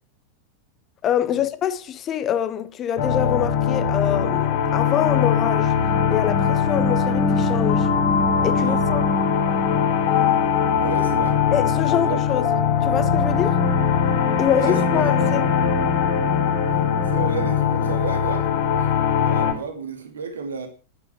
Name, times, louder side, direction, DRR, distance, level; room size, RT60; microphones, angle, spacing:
voice 1, 1.0-5.7 6.1-7.9 8.4-9.0 11.5-12.5 12.8-13.6 14.4-15.4, left 10 dB, 30° left, 1.3 m, -25 dB
sound 1, 3.0-19.5, left 6 dB, 55° left, 3.5 m, -21 dB
voice 2, 10.8-11.4 12.0-12.4 14.5-15.4 16.7-18.5 18.8-18.9 19.1-20.7, right 5 dB, 70° right, 2.3 m, -32 dB
12.0 x 9.1 x 6.1 m
figure-of-eight pair, 90°, 0 cm